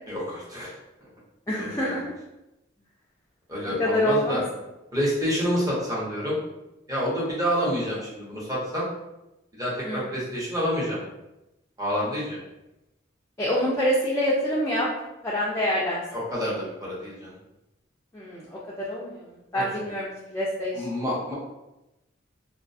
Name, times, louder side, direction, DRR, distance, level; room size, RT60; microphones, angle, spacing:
voice 1, 0.1-0.8 1.5-1.9 3.5-4.4 4.9-6.4 6.9-8.9 9.5-11.0 11.8-12.4 16.1-17.3 19.5-19.6 20.7-21.3, equal, 20° right, -7 dB, 0.7 m, -28 dB
voice 2, 1.5-2.0 3.6-4.4 9.8-10.2 13.4-14.9 15.2-16.0 18.1-19.2 19.5-20.8, equal, 15° left, -7 dB, 0.3 m, -26 dB
2.3 x 2.2 x 2.5 m, 0.96 s
head